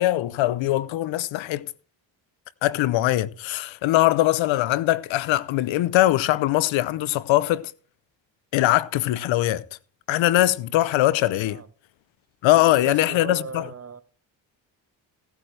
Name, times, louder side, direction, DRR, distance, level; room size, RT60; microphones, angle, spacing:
voice 1, 0.0-1.7 2.6-7.7 8.5-9.6 10.1-11.6 12.4-13.7, left 15 dB, 80° left, 0.7 m, -21 dB
voice 2, 12.6-14.0, right 5 dB, 30° right, 1.2 m, -38 dB
17.5 x 9.1 x 3.3 m
supercardioid pair, 65°, 45 cm